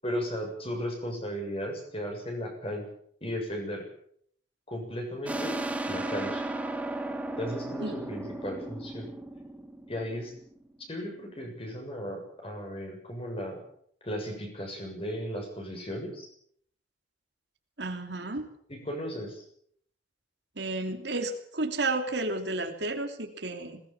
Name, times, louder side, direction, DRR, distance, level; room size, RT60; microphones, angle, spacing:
voice 1, 0.0-2.9 3.2-3.9 4.7-5.6 5.9-6.4 7.4-9.1 9.9-10.3 10.9-13.6 14.0-16.3 18.7-19.4, equal, 30° left, 2 dB, 7.0 m, -35 dB
sound 1, 5.2-10.6, right 2 dB, 10° right, 1.8 m, -35 dB
voice 2, 17.8-18.5 20.6-23.8, right 2 dB, 65° right, 5 dB, 2.9 m, -32 dB
21.0 x 19.0 x 7.3 m, 0.64 s
head